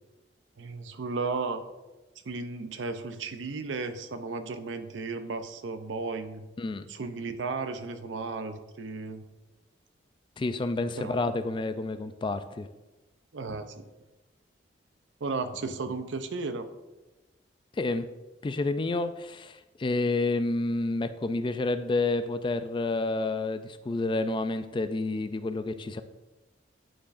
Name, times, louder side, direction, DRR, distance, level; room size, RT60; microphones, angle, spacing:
voice 1, 0.6-1.6 2.2-6.5 6.9-9.2 10.9-11.1 13.3-13.8 15.2-16.7, right 4 dB, 85° right, 9 dB, 0.6 m, -34 dB
voice 2, 10.4-12.7 17.8-18.1 18.4-26.0, left 2 dB, 25° left, 11 dB, 0.3 m, -29 dB
10.0 x 4.7 x 2.5 m, 1.1 s
head